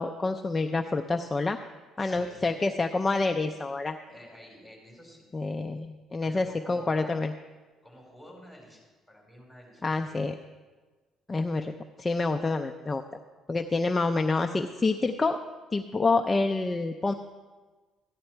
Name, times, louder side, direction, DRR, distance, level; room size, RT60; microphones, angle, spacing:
voice 1, 0.0-1.6 2.0-4.0 5.3-7.3 9.8-10.3 11.3-11.7 12.0-13.0 13.5-15.4 15.7-17.1, left 3 dB, 20° left, 4 dB, 0.4 m, -27 dB
voice 2, 2.0-2.5 4.1-5.2 6.2-7.1 7.8-10.2, equal, 5° right, -2 dB, 4.1 m, -50 dB
13.5 x 10.5 x 4.5 m, 1.3 s
cardioid pair, 120°, 0 cm